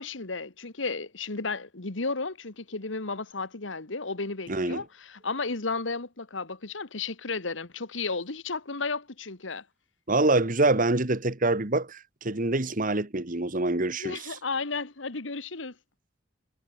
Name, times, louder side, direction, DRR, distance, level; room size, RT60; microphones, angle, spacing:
voice 1, 0.0-9.6 14.0-15.7, left 4 dB, 80° left, 1.8 m, -33 dB
voice 2, 4.5-4.8 10.1-14.4, right 2 dB, 45° right, 1.7 m, -25 dB
head